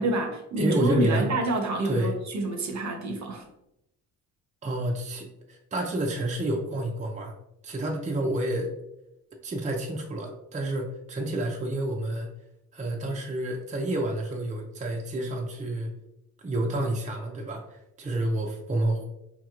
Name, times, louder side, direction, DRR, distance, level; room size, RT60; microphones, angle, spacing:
voice 1, 0.0-3.4, right 2 dB, 45° right, 4 dB, 0.8 m, -28 dB
voice 2, 0.6-1.3 1.8-2.1 4.6-7.3 7.6-8.7 9.4-12.3 12.7-15.9 16.4-19.0, right 1 dB, 20° right, 0 dB, 0.6 m, -29 dB
3.8 x 3.0 x 2.4 m, 0.84 s
supercardioid pair, 65°, 40 cm